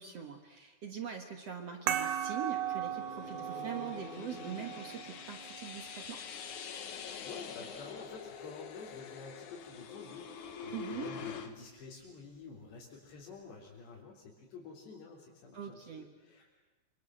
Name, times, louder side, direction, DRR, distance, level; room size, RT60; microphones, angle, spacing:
voice 1, 0.0-6.2 10.7-11.1 15.5-16.1, right 7 dB, 55° right, 5 dB, 1.9 m, -43 dB
sound 1, 1.4-11.5, left 7 dB, 55° left, 2.5 m, -46 dB
sound 2, 1.9-7.0, right 10 dB, 85° right, 3.9 m, -39 dB
voice 2, 6.9-16.5, left 4 dB, 85° left, -4 dB, 6.0 m, -50 dB
28.0 x 26.0 x 7.8 m, 1.2 s
omnidirectional pair, 4.8 m